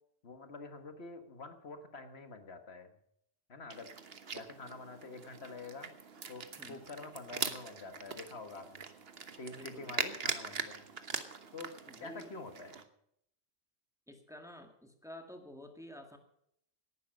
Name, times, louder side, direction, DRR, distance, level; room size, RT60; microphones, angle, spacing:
voice 1, 0.2-2.9 3.5-3.9 4.3-5.9 6.3-8.9 9.4-10.9 11.5-11.7 12.0-12.8, left 3 dB, 75° left, 8 dB, 1.8 m, -47 dB
sound 1, 3.7-12.8, right 5 dB, 65° right, 1.4 m, -42 dB
voice 2, 9.5-10.1 11.9-12.3 14.1-16.2, left 1 dB, 5° right, 4 dB, 1.9 m, -51 dB
18.5 x 11.0 x 5.2 m, 0.72 s
omnidirectional pair, 1.1 m